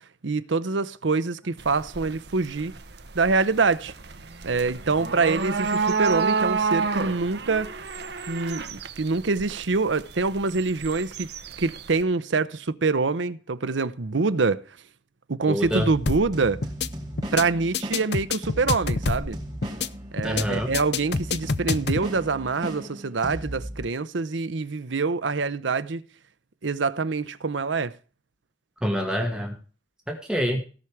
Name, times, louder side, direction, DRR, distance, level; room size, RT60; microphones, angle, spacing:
voice 1, 0.2-2.7 3.1-3.9 4.4-7.8 8.3-11.3 11.6-14.6 15.3-16.6 17.3-19.4 20.1-26.0 26.6-28.0, right 4 dB, 85° right, 0.8 m, -25 dB
sound 1, 1.6-12.0, right 5 dB, 65° right, 1.1 m, -30 dB
voice 2, 15.5-15.9 20.2-20.7 28.8-29.5 30.1-30.6, equal, 5° right, 1.8 m, -26 dB
sound 2, 15.6-23.9, equal, 20° right, 4.3 m, -36 dB
sound 3, 16.1-16.3 16.6-16.9 17.2-17.4 17.7-19.3 19.6-19.9 20.2-20.4 20.7-22.0, left 4 dB, 65° left, 0.7 m, -26 dB
17.0 x 5.9 x 4.9 m
head